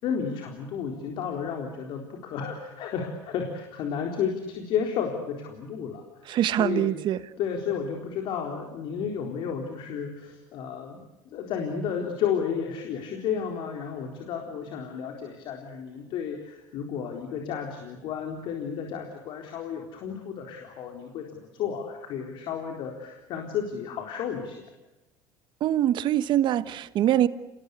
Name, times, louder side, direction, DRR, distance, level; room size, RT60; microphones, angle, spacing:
voice 1, 0.0-6.3 6.6-6.9 7.4-24.7, left 7 dB, 65° left, 2 dB, 4.1 m, -32 dB
voice 2, 6.3-7.2 25.6-27.3, right 12 dB, 55° right, 15 dB, 1.3 m, -23 dB
28.5 x 20.5 x 8.2 m, 0.99 s
supercardioid pair, 95°, 9 cm